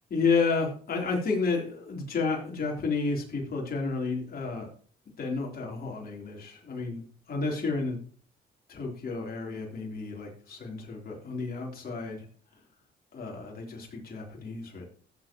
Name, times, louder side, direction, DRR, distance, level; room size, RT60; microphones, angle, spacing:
voice 1, 0.1-4.7 5.2-8.0 8.7-12.2 13.1-14.9, left 4 dB, 50° left, -1 dB, 3.8 m, -31 dB
15.5 x 7.6 x 3.1 m, 0.43 s
cardioid pair, 90°, 20 cm